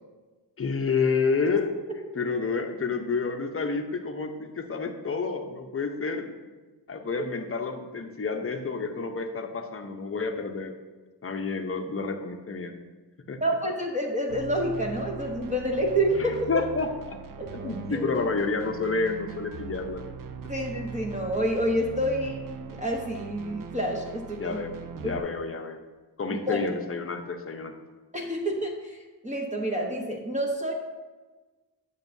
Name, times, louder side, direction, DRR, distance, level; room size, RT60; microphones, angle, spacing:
voice 1, 0.6-1.7 2.1-6.4 6.9-10.7 11.2-12.7 13.3-13.4 16.2-17.2 17.5-20.0 24.4-25.8 26.2-27.8, left 4 dB, 30° left, 5 dB, 0.8 m, -29 dB
voice 2, 13.4-16.5 17.4-18.1 20.5-24.6 25.0-25.1 26.3-26.7 28.1-29.0 29.2-30.7, right 1 dB, 15° right, 0 dB, 1.0 m, -28 dB
sound 1, 14.3-25.2, right 6 dB, 50° right, 0.5 m, -41 dB
9.1 x 6.5 x 2.7 m, 1.3 s
cardioid pair, 85°, 42 cm